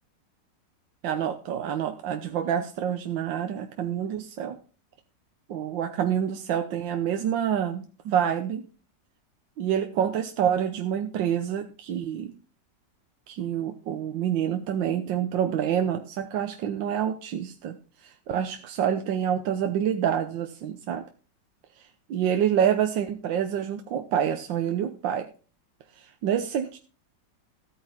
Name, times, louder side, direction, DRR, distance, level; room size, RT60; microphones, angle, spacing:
voice 1, 1.0-4.6 5.5-8.6 9.6-12.3 13.3-17.8 18.0-21.0 22.1-25.3 26.0-26.8, right 9 dB, 85° right, 6 dB, 1.6 m, -27 dB
13.5 x 9.3 x 4.3 m, 0.38 s
omnidirectional pair, 2.0 m